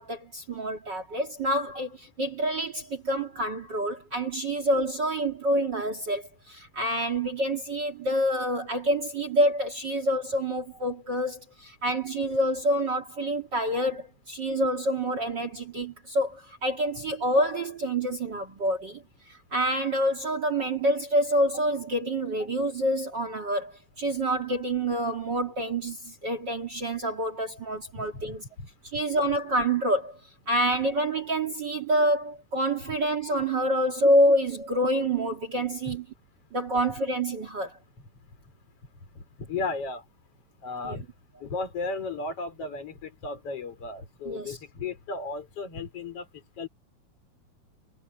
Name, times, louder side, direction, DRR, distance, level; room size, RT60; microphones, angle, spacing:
voice 1, 0.0-19.0 19.3-28.4 28.9-30.2 30.5-36.0 36.5-37.8 40.8-41.0 44.3-44.6, right 1 dB, 40° right, 2.1 m, -27 dB
voice 2, 28.0-28.3 35.9-36.0 39.2-40.0 40.6-41.1 41.4-46.7, left 3 dB, 40° left, 5.7 m, -35 dB
omnidirectional pair, 4.0 m